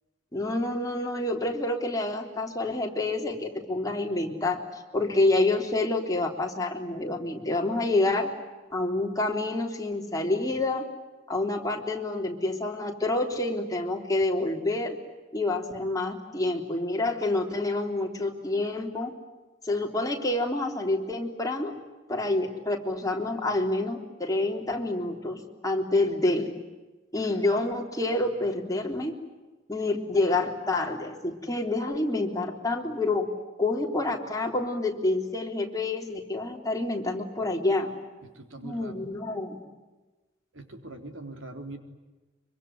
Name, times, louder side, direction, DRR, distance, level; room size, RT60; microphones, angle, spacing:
voice 1, 0.3-4.6 4.9-8.3 8.7-10.8 11.3-15.0 15.3-19.1 19.6-21.8 22.1-26.5 27.1-29.1 29.7-33.3 33.6-37.9 38.6-39.6, left 2 dB, 20° left, 1 dB, 3.5 m, -28 dB
voice 2, 38.4-39.1 40.5-41.8, right 2 dB, 70° right, 5 dB, 3.8 m, -42 dB
25.5 x 25.0 x 9.5 m, 1.2 s
head